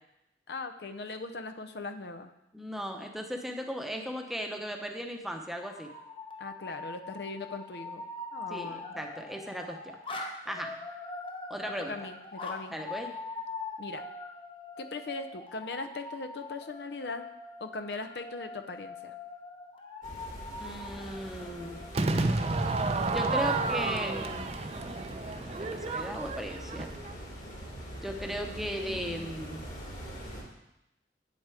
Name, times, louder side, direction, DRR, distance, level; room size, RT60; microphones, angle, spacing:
voice 1, 0.5-2.3 6.4-8.0 8.3-9.1 11.9-12.7 13.8-14.0 14.8-17.3 17.6-19.1 28.2-29.3, left 3 dB, 65° left, 8 dB, 0.6 m, -40 dB
voice 2, 2.5-5.9 8.5-10.0 10.5-10.8 11.5-11.9 12.7-13.1 20.6-21.8 23.1-24.5 25.4-26.9 28.0-29.6, equal, ahead, 3 dB, 0.8 m, -37 dB
sound 1, 5.6-24.5, left 3 dB, 30° left, 0.9 m, -43 dB
sound 2, 20.0-30.4, equal, 50° left, 2.4 m, -43 dB
Crowd / Fireworks, 21.9-27.2, right 3 dB, 35° right, 0.5 m, -31 dB
8.8 x 7.6 x 4.9 m, 0.89 s
head